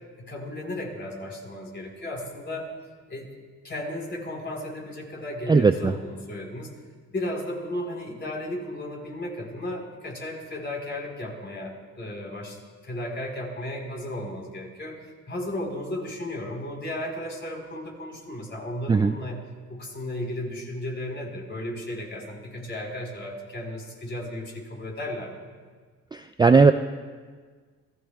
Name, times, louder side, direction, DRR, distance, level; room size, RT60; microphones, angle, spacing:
voice 1, 0.2-2.7 3.1-3.3 3.6-6.7 7.1-15.0 15.3-19.4 19.7-25.5, left 1 dB, 35° left, 0 dB, 4.2 m, -34 dB
voice 2, 5.5-6.0 18.9-19.1 26.1-26.7, right 4 dB, 15° right, 8 dB, 0.3 m, -18 dB
27.0 x 16.0 x 2.3 m, 1.5 s
cardioid pair, 90°, 30 cm